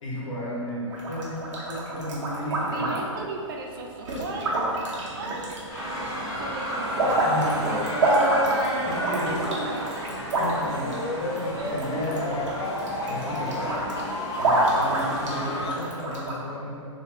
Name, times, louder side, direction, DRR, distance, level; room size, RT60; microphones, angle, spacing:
voice 1, 0.0-3.2 7.2-7.8 8.8-9.5 10.4-12.4 13.1-13.9 14.4-16.8, equal, 75° left, -6 dB, 1.2 m, -33 dB
sound 1, 0.9-3.3 4.1-6.0 6.2-16.4, right 1 dB, 70° right, 0.9 m, -28 dB
voice 2, 2.7-4.9 5.1-5.6 6.4-6.9 7.4-7.8 9.1-10.1 11.5-11.7, right 3 dB, 45° right, 0 dB, 0.4 m, -36 dB
sound 2, 5.7-15.7, equal, 20° left, 0.8 m, -31 dB
sound 3, 10.8-15.8, left 2 dB, 55° left, 0.5 m, -33 dB
3.1 x 2.7 x 2.9 m, 2.3 s
hypercardioid pair, 155°, 16 cm